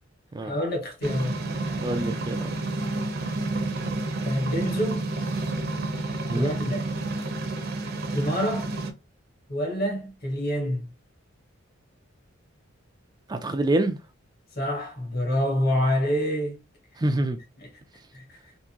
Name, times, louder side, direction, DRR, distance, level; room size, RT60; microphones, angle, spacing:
voice 1, 0.4-1.4 4.2-5.0 6.3-6.9 8.1-8.7 9.5-10.9 14.5-16.6 17.6-17.7 18.1-18.3, equal, 50° left, 1.4 m, -27 dB
sound 1, 1.0-8.9, right 2 dB, 50° right, 0.7 m, -30 dB
voice 2, 1.8-2.5 6.3-6.6 13.3-14.0 17.0-17.4, right 1 dB, 20° right, 0.4 m, -26 dB
3.6 x 2.7 x 2.8 m
head